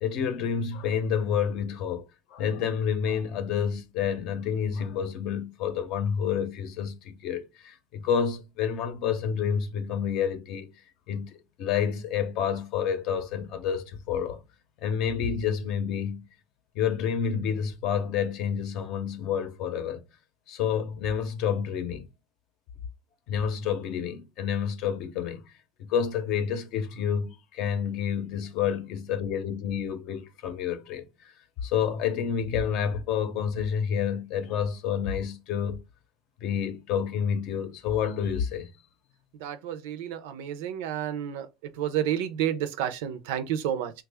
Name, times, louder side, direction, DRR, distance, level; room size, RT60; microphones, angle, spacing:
voice 1, 0.0-2.1 2.3-10.7 11.1-14.4 14.8-16.3 16.7-20.0 20.5-22.0 23.3-25.5 25.9-31.3 31.6-35.8 36.4-38.7, left 7 dB, 55° left, 0.6 m, -29 dB
voice 2, 39.4-41.5 41.8-43.9, right 10 dB, 80° right, 0.5 m, -30 dB
3.1 x 2.3 x 3.4 m
cardioid pair, 150°, 0 cm